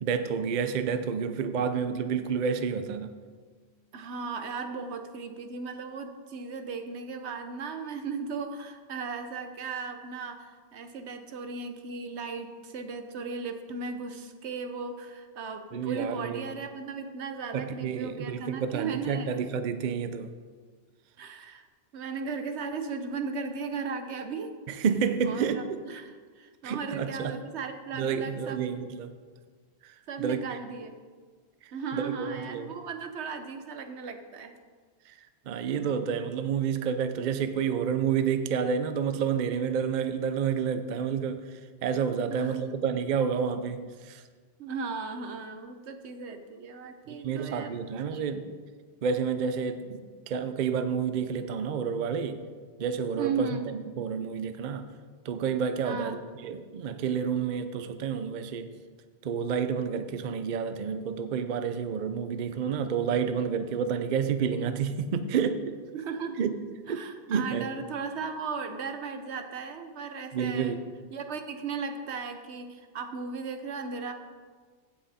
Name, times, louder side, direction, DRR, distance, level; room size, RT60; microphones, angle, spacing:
voice 1, 0.0-3.1 15.7-16.5 17.5-20.3 24.7-25.6 26.6-27.3 28.0-29.1 29.8-30.4 31.6-32.7 35.1-35.2 35.5-44.2 47.2-48.5 49.0-50.0 50.3-52.4 52.8-54.9 55.3-56.2 56.4-58.7 59.2-65.7 66.4-66.5 66.9-67.8 70.3-70.8, right 7 dB, 50° right, 10 dB, 0.6 m, -29 dB
voice 2, 3.9-19.3 21.2-21.7 21.9-24.8 25.2-28.7 30.1-31.0 31.7-34.6 42.3-42.6 44.6-47.8 48.1-48.3 53.2-53.7 55.8-56.2 65.9-66.4 66.9-70.8 71.1-74.1, right 5 dB, 80° right, 7 dB, 1.1 m, -36 dB
15.5 x 5.8 x 4.2 m, 1.5 s
omnidirectional pair, 1.1 m